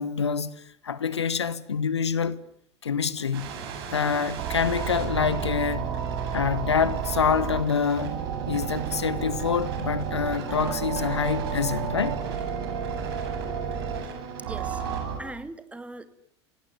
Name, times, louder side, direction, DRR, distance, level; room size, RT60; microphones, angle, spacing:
voice 1, 0.0-2.4 2.8-3.6 3.9-5.9 6.3-8.2 8.5-12.2, left 6 dB, 75° left, 1.4 m, -26 dB
sound 1, 3.3-15.2, right 7 dB, 60° right, 7.7 m, -31 dB
voice 2, 14.4-14.8 15.2-16.1, right 2 dB, 10° right, 2.5 m, -39 dB
28.5 x 18.5 x 9.4 m
figure-of-eight pair, 75°, 14 cm